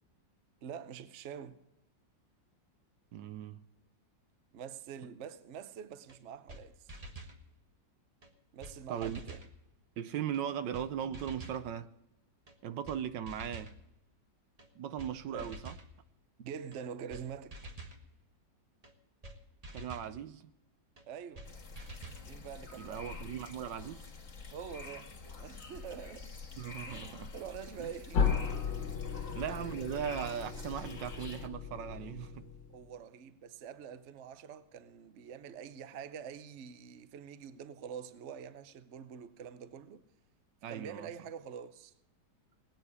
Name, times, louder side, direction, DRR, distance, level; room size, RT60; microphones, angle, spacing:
voice 1, 0.6-1.6 4.5-6.9 8.5-9.5 15.3-15.6 16.4-17.6 21.1-21.5 22.3-23.1 24.5-25.1 25.4-26.3 26.8-28.2 29.1-29.4 29.7-30.0 32.7-40.0 40.7-41.9, right 7 dB, 55° right, 0.9 m, -46 dB
voice 2, 3.1-3.6 8.9-9.3 10.0-11.9 12.6-13.7 14.7-15.8 19.7-20.4 22.8-24.1 26.6-27.3 27.8-27.9 29.3-32.5 40.6-41.1, right 9 dB, 75° right, 1.4 m, -38 dB
sound 1, 6.1-6.2 6.5-6.6 6.9-7.4 8.2-8.3 8.6-8.7 9.0-9.5 10.3-10.4 10.7-10.9 11.1-11.6 12.5-12.6 12.8-13.0 13.3-13.7 14.6-14.7 15.0-15.1 15.4-15.9 16.7-16.8 17.1-17.2 17.5-18.0 18.8-18.9 19.2-19.4 19.6-20.1 21.0-21.1 21.3-21.5 21.7-22.2, right 2 dB, 25° right, 1.2 m, -47 dB
sound 2, 21.4-31.5, left 4 dB, 45° left, 2.2 m, -47 dB
sound 3, 28.1-32.9, left 6 dB, 75° left, 2.1 m, -35 dB
19.5 x 9.1 x 4.8 m
omnidirectional pair, 2.0 m